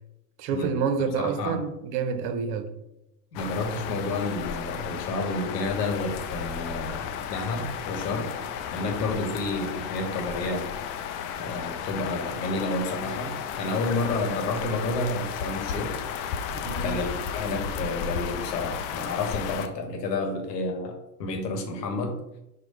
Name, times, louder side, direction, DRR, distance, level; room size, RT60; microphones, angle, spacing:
voice 1, 0.4-2.7 16.5-17.0, right 5 dB, 55° right, 0.8 m, -28 dB
voice 2, 1.0-1.6 3.3-8.3 8.7-10.7 11.4-16.0 16.8-22.4, left 2 dB, 80° left, 1.1 m, -30 dB
sound 1, 3.3-19.7, left 7 dB, 45° left, 0.5 m, -34 dB
4.7 x 2.2 x 4.7 m
hypercardioid pair, 85°, 48 cm